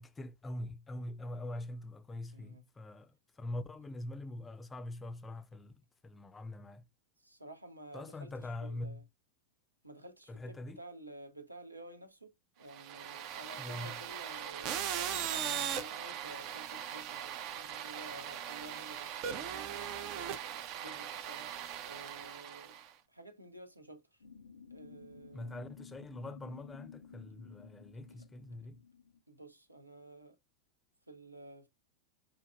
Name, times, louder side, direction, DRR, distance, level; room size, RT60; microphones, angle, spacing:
voice 1, 0.0-5.7 6.0-6.9 7.9-9.1 10.3-10.8 13.6-14.0 25.3-28.8, left 1 dB, 15° left, 0.4 m, -43 dB
voice 2, 2.3-2.6 7.2-9.0 9.8-21.5 21.8-22.8 23.1-24.2 24.7-25.5 28.1-28.2 29.3-30.4 31.1-31.7, right 1 dB, 85° right, 0.7 m, -52 dB
sound 1, 12.7-22.9, right 9 dB, 40° right, 0.5 m, -39 dB
sound 2, 24.2-29.2, left 6 dB, 75° left, 0.4 m, -54 dB
4.9 x 2.5 x 2.4 m
figure-of-eight pair, 90°, 0 cm